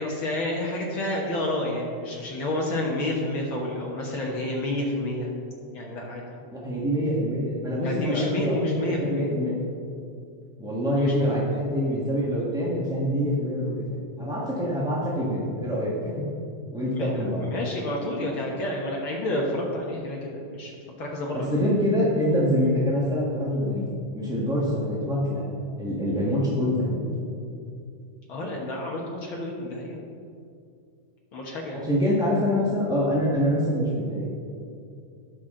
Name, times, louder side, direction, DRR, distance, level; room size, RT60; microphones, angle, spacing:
voice 1, 0.0-5.3 5.7-6.5 7.8-9.3 10.9-11.6 16.9-20.7 21.0-21.7 28.3-30.0 31.3-31.9, left 1 dB, 55° left, -2 dB, 1.6 m, -30 dB
voice 2, 6.5-9.6 10.6-16.1 16.7-17.5 21.3-25.4 25.8-27.1 31.7-34.2, equal, 5° right, -6 dB, 0.5 m, -25 dB
18.5 x 6.3 x 3.8 m, 2.4 s
omnidirectional pair, 3.5 m